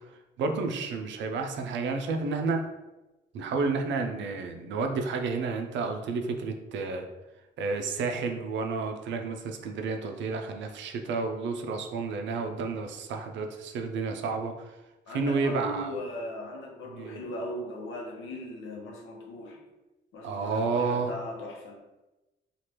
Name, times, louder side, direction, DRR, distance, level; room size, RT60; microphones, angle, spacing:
voice 1, 0.4-2.6 3.3-7.1 7.6-14.5 15.1-15.9 16.9-17.2 20.2-21.1, right 4 dB, 70° right, 5 dB, 0.5 m, -30 dB
voice 2, 15.1-19.7 20.1-21.8, left 1 dB, 80° left, 0 dB, 0.8 m, -38 dB
3.2 x 2.4 x 2.9 m, 1.1 s
cardioid pair, 90°, 20 cm